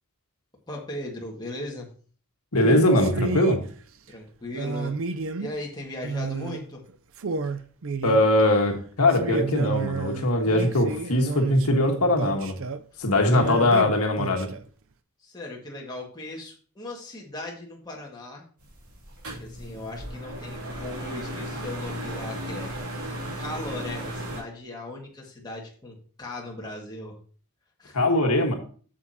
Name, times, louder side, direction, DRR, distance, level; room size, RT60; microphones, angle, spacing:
voice 1, 0.7-1.9 4.1-5.0 5.4-6.8 15.2-18.4 19.4-22.7 23.4-27.1 27.8-28.0, left 2 dB, 20° left, -2 dB, 1.8 m, -38 dB
voice 2, 2.5-3.6 8.0-12.6 13.0-14.5 27.9-28.5, left 1 dB, 80° left, 3 dB, 1.6 m, -21 dB
sound 1, 2.6-3.6 4.5-5.6 6.0-6.6 6.9-7.0 7.2-8.4 9.1-12.8 13.3-14.6, right 4 dB, 60° right, 0.5 m, -31 dB
sound 2, 18.6-24.4, right 1 dB, 80° right, 3.0 m, -35 dB
8.4 x 7.4 x 2.8 m, 0.41 s
head